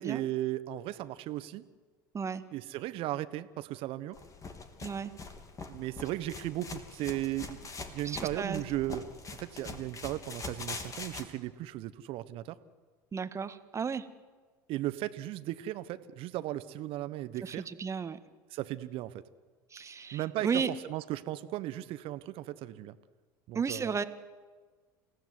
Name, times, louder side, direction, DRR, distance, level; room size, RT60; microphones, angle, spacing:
voice 1, 0.0-1.6 2.5-4.2 5.7-9.1 9.4-12.5 14.7-17.6 18.5-19.2 20.1-20.6 20.9-23.0 23.5-23.9, right 14 dB, 55° right, 13 dB, 1.3 m, -36 dB
sound 1, 4.2-11.3, left 4 dB, 30° left, 3.5 m, -43 dB
voice 2, 4.8-5.1 8.0-8.6 13.1-14.1 17.4-18.2 19.7-20.7 23.5-24.0, right 6 dB, 25° right, 10 dB, 1.8 m, -34 dB
29.5 x 16.5 x 9.6 m, 1.4 s
hypercardioid pair, 80°, 11 cm